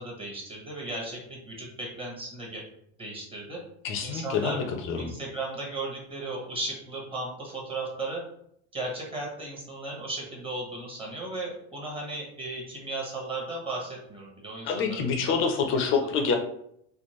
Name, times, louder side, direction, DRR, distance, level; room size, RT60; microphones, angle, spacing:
voice 1, 0.0-2.6 3.0-3.6 4.0-4.6 5.0-8.2 8.7-15.4 15.7-16.1, right 2 dB, 15° right, -2 dB, 1.1 m, -36 dB
voice 2, 3.8-5.1 14.6-16.4, left 5 dB, 35° left, 5 dB, 0.6 m, -27 dB
4.3 x 2.4 x 3.1 m, 0.71 s
supercardioid pair, 145°, 34 cm